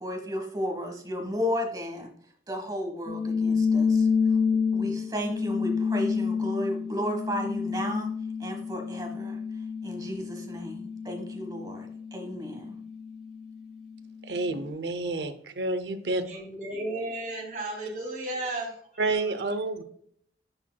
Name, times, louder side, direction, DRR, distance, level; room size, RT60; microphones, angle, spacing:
voice 1, 0.0-2.1 2.5-4.1 4.7-8.1 8.4-9.4 9.8-12.8, equal, 20° right, 1.3 m, -33 dB
sound 1, 3.1-13.9, left 5 dB, 50° left, 1.8 m, -29 dB
voice 2, 14.3-16.2 19.0-19.8, right 2 dB, 75° right, 0.7 m, -29 dB
voice 3, 16.2-18.8, right 1 dB, 50° right, 2.8 m, -34 dB
9.7 x 4.6 x 2.3 m
head